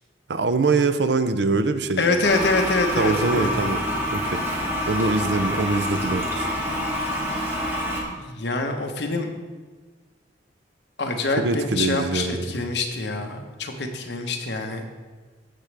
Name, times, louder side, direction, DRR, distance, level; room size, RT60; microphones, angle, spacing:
voice 1, 0.3-2.2 3.0-3.8 4.1-4.4 4.9-6.5 11.4-12.5, right 3 dB, 65° right, 11 dB, 0.6 m, -23 dB
voice 2, 2.0-3.5 8.1-9.3 11.0-14.8, left 3 dB, 65° left, 4 dB, 1.1 m, -25 dB
Toilet flush, 2.2-8.0, left 1 dB, 15° right, 1.6 m, -27 dB
15.5 x 6.1 x 3.4 m, 1.4 s
head